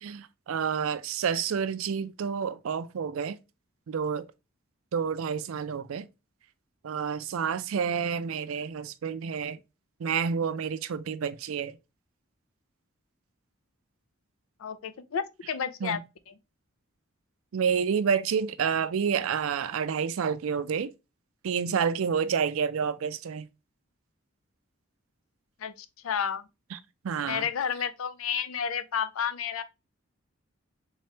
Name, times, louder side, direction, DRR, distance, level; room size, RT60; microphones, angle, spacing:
voice 1, 0.0-3.4 3.9-4.3 4.9-6.1 6.8-9.6 10.0-11.7 15.8-16.0 17.5-20.9 21.4-23.5 26.7-26.8 27.0-27.4, right 6 dB, 85° right, 0.4 m, -29 dB
voice 2, 14.6-16.0 25.6-26.5 27.3-29.6, left 7 dB, 85° left, 0.4 m, -31 dB
3.5 x 3.3 x 2.8 m
head